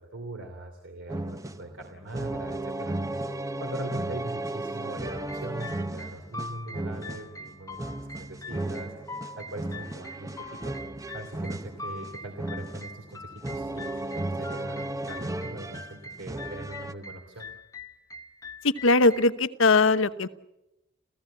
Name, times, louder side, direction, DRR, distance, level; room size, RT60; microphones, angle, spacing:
voice 1, 0.0-10.7 11.1-17.5, right 1 dB, 70° right, 3 dB, 2.9 m, -41 dB
sound 1, 1.1-16.9, right 1 dB, 15° right, 0.8 m, -35 dB
sound 2, 5.1-19.2, left 2 dB, 15° left, 1.1 m, -43 dB
voice 2, 18.6-20.3, left 3 dB, 85° left, 12 dB, 1.0 m, -21 dB
30.0 x 15.5 x 8.6 m, 0.93 s
head